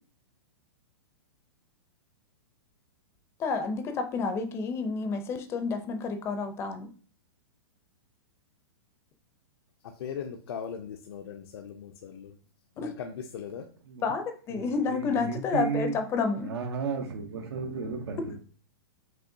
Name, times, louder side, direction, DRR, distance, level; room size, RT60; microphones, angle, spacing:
voice 1, 3.4-6.9 12.8-12.9 14.0-16.5, left 4 dB, 20° left, 7 dB, 0.5 m, -30 dB
voice 2, 10.0-12.3 12.8-13.7, left 7 dB, 70° left, 3 dB, 0.5 m, -39 dB
voice 3, 14.5-16.0 16.4-18.4, right 5 dB, 80° right, 3 dB, 0.8 m, -33 dB
5.4 x 3.0 x 2.6 m, 0.41 s
hypercardioid pair, 145°, 14 cm